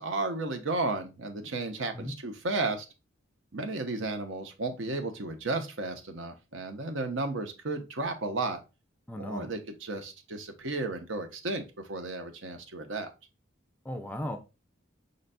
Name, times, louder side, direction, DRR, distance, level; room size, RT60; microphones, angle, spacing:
voice 1, 0.0-2.9 3.5-8.6 9.2-13.1, right 2 dB, 65° right, 0.8 m, -33 dB
voice 2, 9.1-9.5 13.8-14.4, left 1 dB, 10° left, 0.5 m, -36 dB
5.1 x 3.9 x 2.2 m
head